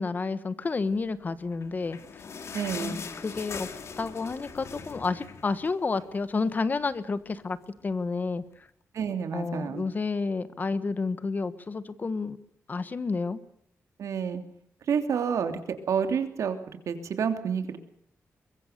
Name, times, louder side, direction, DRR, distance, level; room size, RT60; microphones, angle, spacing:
voice 1, 0.0-2.0 2.8-3.7 4.0-7.6 7.8-8.4 9.3-12.4 12.7-13.4, left 4 dB, 35° left, 14 dB, 1.4 m, -30 dB
sound 1, 1.5-6.2 6.6-6.7 7.0-7.1 7.8-7.9, left 5 dB, 60° left, 2.6 m, -41 dB
voice 2, 2.5-3.0 8.9-9.8 14.0-14.4 14.9-17.8, right 7 dB, 85° right, 8 dB, 3.0 m, -29 dB
23.0 x 22.5 x 6.8 m, 0.71 s
wide cardioid pair, 140°, 5 cm